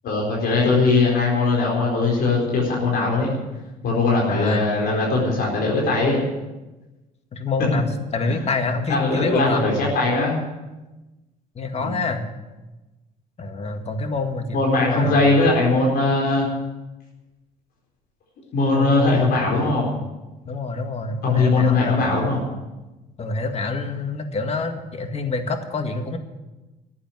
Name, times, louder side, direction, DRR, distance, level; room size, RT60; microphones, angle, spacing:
voice 1, 0.0-3.3 3.8-6.2 8.3-8.4 8.9-10.4 11.8-12.0 14.5-16.5 18.5-19.9 21.2-22.4, left 3 dB, 70° left, -3 dB, 4.4 m, -20 dB
voice 2, 4.3-4.7 7.3-9.7 11.6-12.2 13.4-15.4 18.7-19.3 20.5-22.2 23.2-26.2, left 3 dB, 40° left, 6 dB, 2.0 m, -27 dB
13.5 x 8.7 x 9.5 m, 1.1 s
cardioid pair, 110°, 17 cm